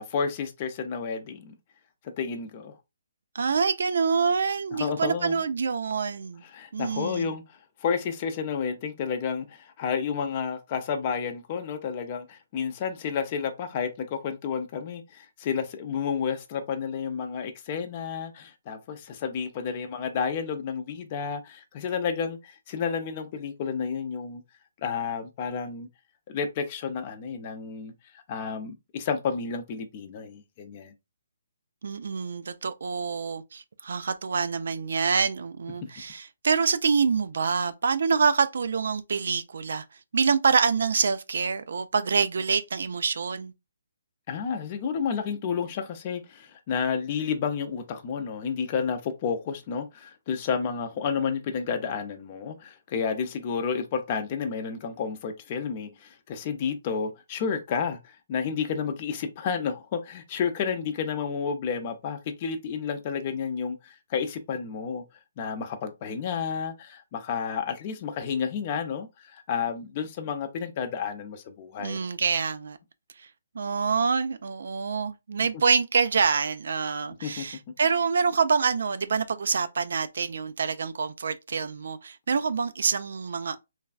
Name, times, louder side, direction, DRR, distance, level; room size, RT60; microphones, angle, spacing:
voice 1, 0.0-1.5 2.2-2.7 4.7-5.4 6.4-24.4 24.8-25.9 26.3-30.9 44.3-65.0 65.4-72.0 77.2-77.4, left 6 dB, 35° left, 0.5 m, -31 dB
voice 2, 3.3-6.4 6.7-7.3 31.8-39.8 40.1-43.5 71.8-72.8 73.2-73.3 73.5-83.6, right 5 dB, 65° right, 0.4 m, -26 dB
3.2 x 2.3 x 2.4 m
hypercardioid pair, 150°, 0 cm